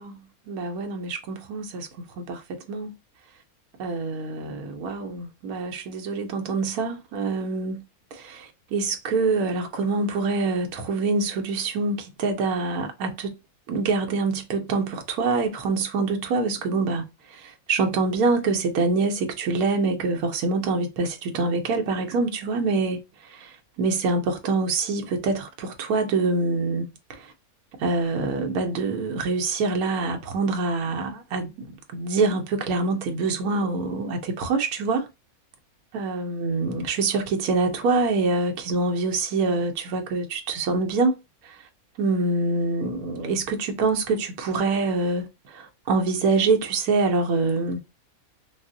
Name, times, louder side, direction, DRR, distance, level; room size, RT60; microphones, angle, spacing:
voice 1, 0.0-1.9 2.3-3.0 3.8-7.8 8.1-13.4 13.7-17.0 17.3-23.0 23.3-26.8 27.1-27.3 27.8-31.5 31.9-35.1 35.9-41.2 41.4-41.6 42.0-47.8, right 3 dB, 85° right, 1.2 m, -25 dB
3.6 x 2.0 x 2.6 m
omnidirectional pair, 1.5 m